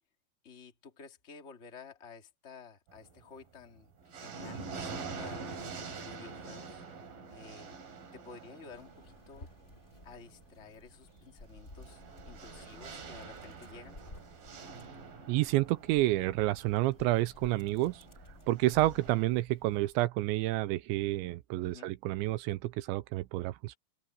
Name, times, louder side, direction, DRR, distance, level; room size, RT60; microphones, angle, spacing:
voice 1, 0.4-5.4 5.9-6.9 7.3-7.8 8.1-9.5 10.0-14.0 21.6-21.9, left 5 dB, 40° left, 1.0 m, -52 dB
sound 1, 2.9-3.4 3.8-19.3, right 4 dB, 50° right, 5.0 m, -46 dB
Dog, 8.7-20.0, left 2 dB, 15° left, 3.2 m, -55 dB
voice 2, 15.3-18.0 18.5-23.8, right 17 dB, 85° right, 2.8 m, -29 dB
open air
omnidirectional pair, 5.6 m